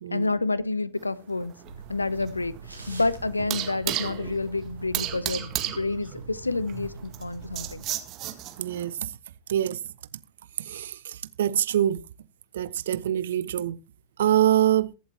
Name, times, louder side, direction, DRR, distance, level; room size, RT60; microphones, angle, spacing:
voice 1, 0.1-1.5 1.9-2.5 2.9-7.8, left 3 dB, 80° left, 0.7 m, -29 dB
sound 1, 1.0-8.9, right 13 dB, 35° right, 1.8 m, -34 dB
sound 2, 1.6-7.9, right 4 dB, 85° right, 3.4 m, -43 dB
voice 2, 8.6-9.1 9.5-9.8 10.7-12.0 12.5-13.8 14.2-14.9, right 11 dB, 60° right, 0.6 m, -24 dB
22.5 x 7.8 x 2.8 m
figure-of-eight pair, 90°, 0 cm